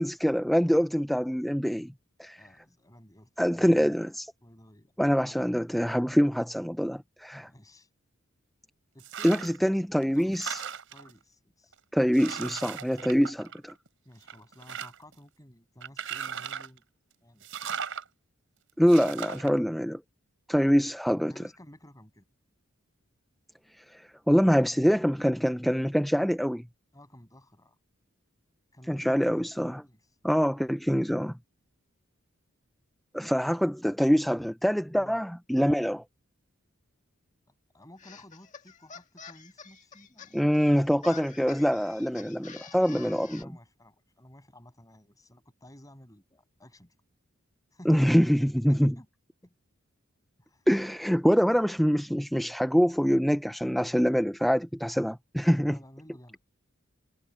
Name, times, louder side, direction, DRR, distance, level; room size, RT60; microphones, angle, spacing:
voice 1, 0.0-1.9 2.2-2.4 3.4-4.3 5.0-7.5 9.2-10.6 11.9-13.7 18.8-20.0 20.5-21.3 23.9-26.6 28.9-29.8 30.2-31.3 33.1-36.0 40.3-43.5 47.9-48.9 50.7-55.8, equal, ahead, 0.5 m, -25 dB
voice 2, 2.3-4.1 4.4-4.9 7.5-7.9 8.9-9.6 10.2-10.3 10.9-11.7 14.0-16.8 17.2-17.5 21.3-22.3 26.9-27.8 28.7-29.5 29.8-30.1 34.9-35.2 37.7-40.4 42.9-43.1 43.4-47.0 47.7-48.1 48.7-49.1 49.4-49.5 50.4-50.7 55.7-56.4, left 1 dB, 15° left, 7.8 m, -53 dB
sound 1, 9.0-9.6 10.0-11.1 11.7-11.8 12.1-13.9 14.2-15.1 15.8-16.8 17.4-18.0 18.9-19.5, right 7 dB, 65° right, 5.6 m, -37 dB
sound 2, 38.0-43.4, left 6 dB, 35° left, 1.8 m, -48 dB
head